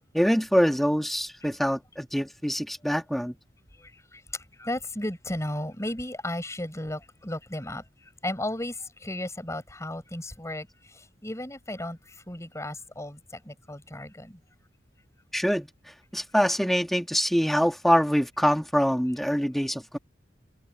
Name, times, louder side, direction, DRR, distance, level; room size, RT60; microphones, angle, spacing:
voice 1, 0.1-3.4 15.3-15.7 16.1-20.0, equal, ahead, 1.9 m, -24 dB
voice 2, 3.8-14.4, left 1 dB, 15° left, 5.3 m, -35 dB
head